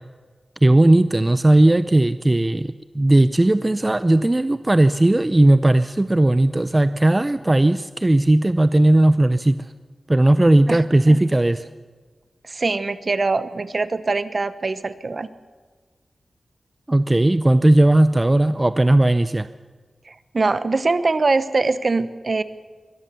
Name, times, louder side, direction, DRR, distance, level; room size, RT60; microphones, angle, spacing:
voice 1, 0.6-9.7 10.1-11.7 16.9-19.5, right 1 dB, 25° right, 12 dB, 0.5 m, -17 dB
voice 2, 10.7-11.2 12.4-15.3 20.1-22.4, right 3 dB, 50° right, 13 dB, 1.0 m, -23 dB
23.5 x 18.0 x 6.9 m, 1.4 s
wide cardioid pair, 90°, 0 cm